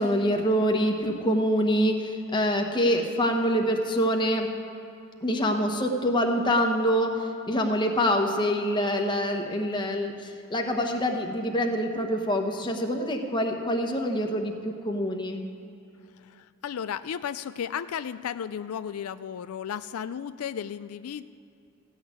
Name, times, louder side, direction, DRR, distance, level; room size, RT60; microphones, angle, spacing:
voice 1, 0.0-4.5 5.2-15.4, equal, 20° left, 3 dB, 1.1 m, -25 dB
voice 2, 16.2-21.2, left 8 dB, 90° left, 13 dB, 0.4 m, -34 dB
15.0 x 6.3 x 9.3 m, 2.7 s
head